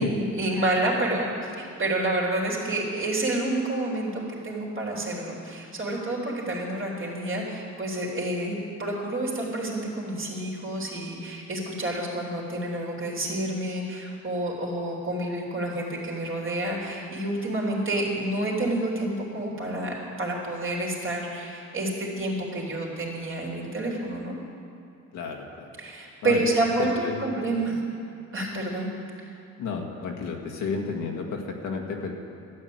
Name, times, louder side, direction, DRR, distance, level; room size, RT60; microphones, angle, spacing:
voice 1, 0.0-24.3 25.8-27.8 28.3-28.9, right 1 dB, 45° right, -3 dB, 3.4 m, -29 dB
voice 2, 25.1-25.7 26.2-26.4 27.0-27.2 29.6-32.1, left 5 dB, 85° left, 1 dB, 1.7 m, -32 dB
12.5 x 9.1 x 7.9 m, 2.5 s
cardioid pair, 90°, 30 cm